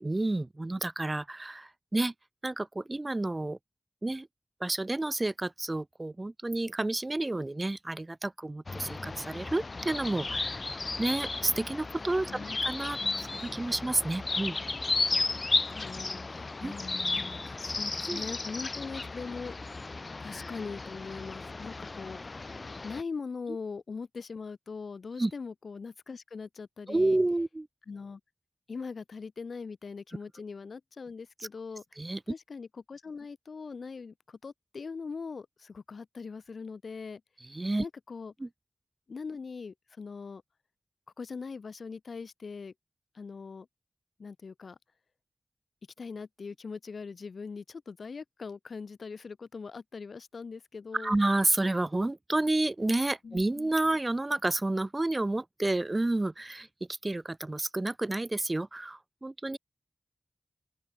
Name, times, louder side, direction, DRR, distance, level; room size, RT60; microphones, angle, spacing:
voice 1, 0.0-2.1 2.4-3.6 4.0-4.3 4.6-10.6 11.0-14.6 16.6-16.7 18.1-18.2 25.2-25.3 26.9-27.7 32.0-32.2 37.5-37.9 38.4-38.5 50.9-56.7 57.0-59.6, right 2 dB, 30° right, 1.7 m, -30 dB
sound 1, 8.7-23.0, left 3 dB, 50° left, 1.9 m, -34 dB
voice 2, 15.7-19.6 20.2-22.2 22.8-27.2 27.9-28.2 28.7-31.8 32.3-37.2 37.8-38.3 39.1-40.4 41.2-42.7 43.1-43.7 44.2-44.8 46.0-51.2 53.2-53.7, left 5 dB, 90° left, 5.6 m, -41 dB
open air
wide cardioid pair, 100°, 0 cm